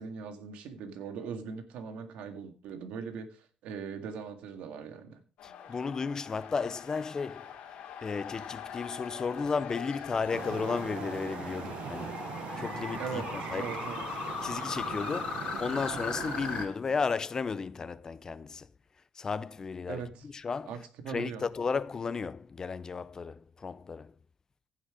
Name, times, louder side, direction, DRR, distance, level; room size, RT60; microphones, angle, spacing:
voice 1, 0.0-5.2 13.0-14.0 19.9-20.2 20.7-20.8 21.0-21.4, right 6 dB, 80° right, 1.9 m, -40 dB
sound 1, 5.4-16.8, left 8 dB, 75° left, 2.8 m, -46 dB
voice 2, 5.4-7.5 8.0-12.2 12.6-13.2 13.5-13.7 14.4-18.7 19.2-20.7 21.1-24.1, left 5 dB, 30° left, 0.5 m, -34 dB
sound 2, 8.6-16.6, left 7 dB, 55° left, 2.9 m, -39 dB
sound 3, 10.3-16.7, right 9 dB, 65° right, 0.9 m, -40 dB
15.0 x 5.7 x 4.9 m
cardioid pair, 115°, 2 cm